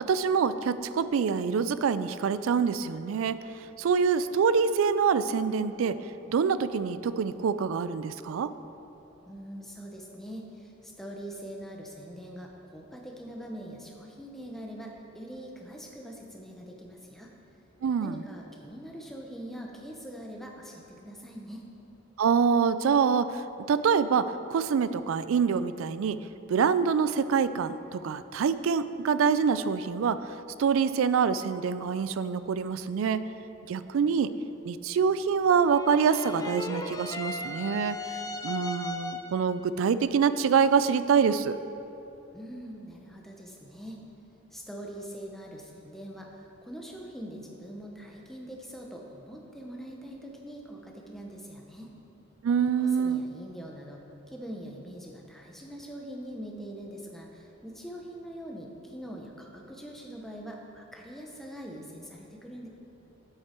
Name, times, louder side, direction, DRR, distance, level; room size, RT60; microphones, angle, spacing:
voice 1, 0.0-3.4 3.8-6.0 6.3-8.5 17.8-18.2 22.2-26.2 26.5-30.3 30.6-33.3 33.7-34.3 34.6-38.0 38.4-41.6 52.4-53.2, right 6 dB, 85° right, 13 dB, 0.3 m, -25 dB
voice 2, 9.3-17.3 18.0-21.7 42.3-44.0 44.5-51.9 52.8-54.0 54.3-62.7, equal, ahead, -1 dB, 0.8 m, -43 dB
sound 1, 35.6-39.5, left 2 dB, 15° left, 0.3 m, -37 dB
7.9 x 7.9 x 4.4 m, 3.0 s
head